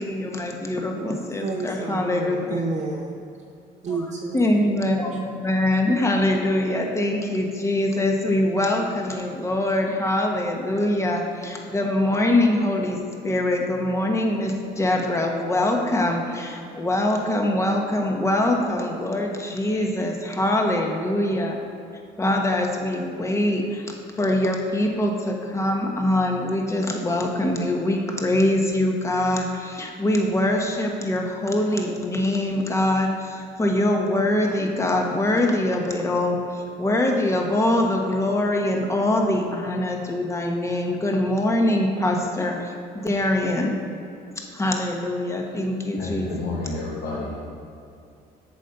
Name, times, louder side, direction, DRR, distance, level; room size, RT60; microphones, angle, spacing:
voice 1, 0.0-2.7 4.3-13.0 13.2-21.6 22.2-23.8 24.2-43.8 44.5-46.3, left 1 dB, 15° left, 1 dB, 1.3 m, -23 dB
voice 2, 1.4-3.2 3.8-4.4, right 3 dB, 45° right, -3 dB, 1.0 m, -30 dB
voice 3, 46.0-47.4, left 2 dB, 80° left, -6 dB, 1.8 m, -30 dB
8.4 x 5.2 x 6.9 m, 2.5 s
cardioid pair, 110°, 17 cm